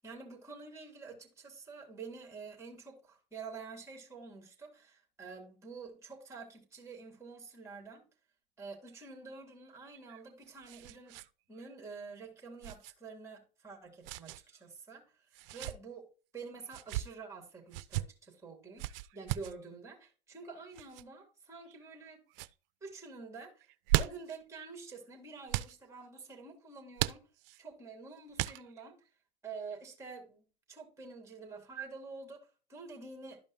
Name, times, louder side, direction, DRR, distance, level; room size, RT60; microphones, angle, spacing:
voice 1, 0.0-8.0 8.6-11.2 11.5-16.1 16.3-18.8 19.1-22.2 22.8-23.7 24.0-27.2 27.6-28.9 29.4-33.4, right 4 dB, 10° right, 3.0 m, -48 dB
sound 1, 9.9-11.3 11.6-11.7 12.6-12.9 14.0-14.4 15.3-15.8 16.7-17.1 17.7-18.1 18.8-19.6 20.7-21.0 21.7-22.1 22.3-22.5 23.6-24.4 25.5-25.8 27.0-27.6 28.4-28.9, right 15 dB, 70° right, 0.5 m, -36 dB
12.0 x 5.2 x 2.8 m
hypercardioid pair, 105°, 29 cm